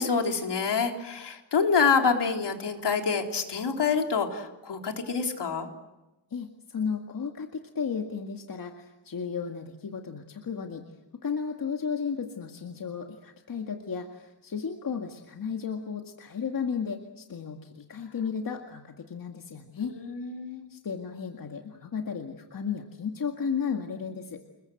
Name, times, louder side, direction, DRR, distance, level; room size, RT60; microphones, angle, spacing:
voice 1, 0.0-5.7 19.8-20.7, left 5 dB, 70° left, 3 dB, 3.8 m, -27 dB
voice 2, 6.3-10.8 11.2-19.9 20.7-24.4, left 6 dB, 50° left, 3 dB, 2.0 m, -34 dB
28.5 x 22.0 x 7.9 m, 1.0 s
wide cardioid pair, 140°, 43 cm